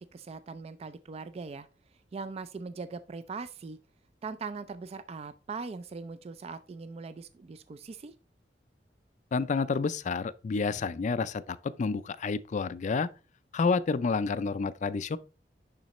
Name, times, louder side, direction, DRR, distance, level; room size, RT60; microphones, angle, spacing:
voice 1, 0.1-1.7 2.1-3.8 4.2-8.1, right 4 dB, 35° right, 0.3 m, -40 dB
voice 2, 9.3-13.1 13.5-15.2, left 4 dB, 45° left, 0.4 m, -29 dB
10.5 x 3.9 x 3.0 m
head